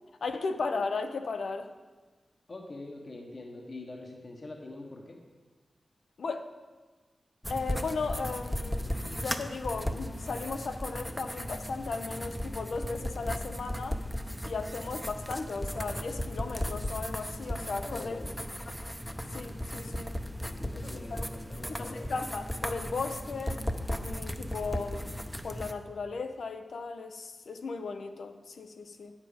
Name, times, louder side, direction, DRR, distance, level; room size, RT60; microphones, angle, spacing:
voice 1, 0.2-1.7 6.2-6.5 7.5-14.0 14.4-18.2 19.3-20.2 20.7-21.2 21.8-23.6 24.0-25.2 25.4-29.1, left 4 dB, 85° left, 7 dB, 0.6 m, -36 dB
voice 2, 2.5-5.2 17.8-18.5 20.5-22.1, left 2 dB, 55° left, 0 dB, 1.2 m, -44 dB
sound 1, 7.4-25.7, equal, 5° left, 0.6 m, -36 dB
8.8 x 7.4 x 5.1 m, 1.4 s
cardioid pair, 60°, 0 cm